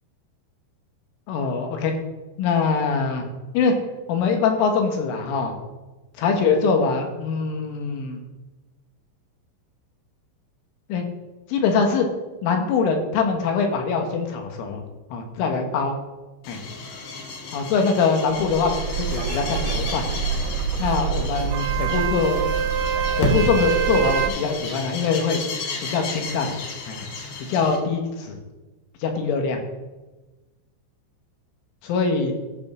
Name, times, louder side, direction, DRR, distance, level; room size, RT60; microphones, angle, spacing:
voice 1, 1.3-1.9 2.4-3.3 3.5-3.8 4.1-5.6 6.2-8.2 10.9-11.1 11.5-12.1 12.4-14.8 15.1-16.0 16.5-16.6 17.5-20.1 20.8-22.4 23.2-25.4 25.8-26.5 26.9-27.1 27.5-28.4 29.0-29.6 31.8-32.3, left 5 dB, 80° left, 4 dB, 4.0 m, -23 dB
sound 1, 16.4-27.8, left 2 dB, 60° left, 3.2 m, -33 dB
sound 2, 18.3-24.3, right 7 dB, 75° right, 2.9 m, -25 dB
14.5 x 5.6 x 6.3 m, 1.1 s
omnidirectional pair, 5.6 m